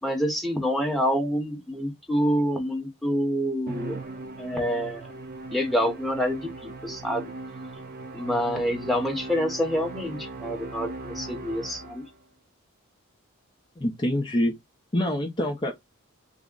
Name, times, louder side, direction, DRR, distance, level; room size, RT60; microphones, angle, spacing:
voice 1, 0.0-4.0 4.4-5.1 5.5-7.3 8.1-12.0, equal, ahead, 0.9 m, -27 dB
Musical instrument, 3.7-12.2, right 2 dB, 45° right, 0.7 m, -39 dB
voice 2, 13.8-14.6 14.9-15.7, left 1 dB, 20° left, 0.5 m, -25 dB
3.4 x 2.0 x 3.7 m
head